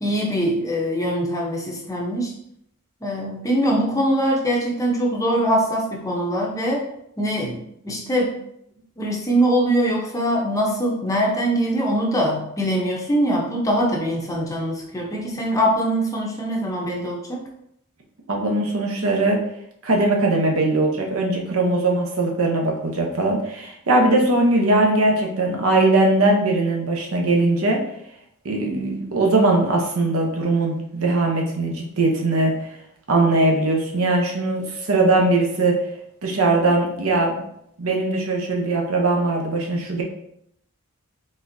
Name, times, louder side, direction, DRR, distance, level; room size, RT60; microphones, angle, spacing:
voice 1, 0.0-2.3 3.0-6.8 7.2-7.6 7.8-8.4 9.0-17.4, equal, 15° left, -1 dB, 0.7 m, -22 dB
voice 2, 18.3-19.4 19.8-27.8 28.4-32.5 33.1-35.8 36.2-37.4 37.8-40.0, right 2 dB, 70° right, 1 dB, 0.8 m, -20 dB
4.2 x 3.5 x 2.6 m, 0.73 s
head